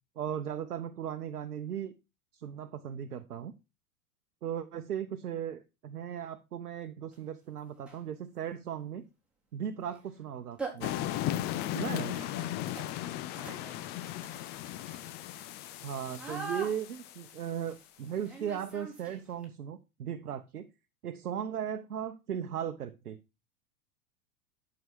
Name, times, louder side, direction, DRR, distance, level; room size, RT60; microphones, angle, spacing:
voice 1, 0.2-1.9 2.3-3.5 4.4-9.1 9.5-10.9 11.7-12.2 15.8-20.7 21.0-23.2, right 9 dB, 75° right, 0.9 m, -37 dB
sound 1, 7.1-7.2 7.8-8.1 9.8-10.0 10.3-10.4 10.6-19.4, right 3 dB, 5° right, 4.1 m, -45 dB
sound 2, 10.8-17.5, left 13 dB, 25° left, 0.4 m, -36 dB
voice 2, 11.5-13.8, left 5 dB, 75° left, 2.9 m, -49 dB
11.0 x 6.2 x 4.6 m
figure-of-eight pair, 95°, 45 cm